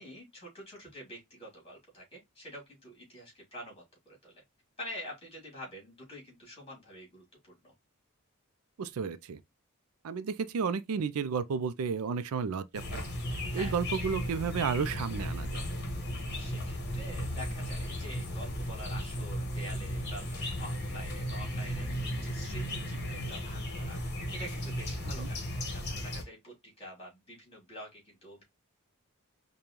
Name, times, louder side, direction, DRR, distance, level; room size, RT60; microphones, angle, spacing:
voice 1, 0.0-4.4 4.8-7.2 7.6-7.7 13.5-13.7 16.4-24.0 24.3-28.4, equal, 25° left, 2.7 m, -47 dB
voice 2, 8.8-9.4 10.0-13.0 13.3-15.5 25.2-25.3, right 5 dB, 85° right, 0.4 m, -32 dB
sound 1, 12.7-26.2, equal, 50° left, 1.1 m, -35 dB
5.2 x 2.2 x 3.0 m
head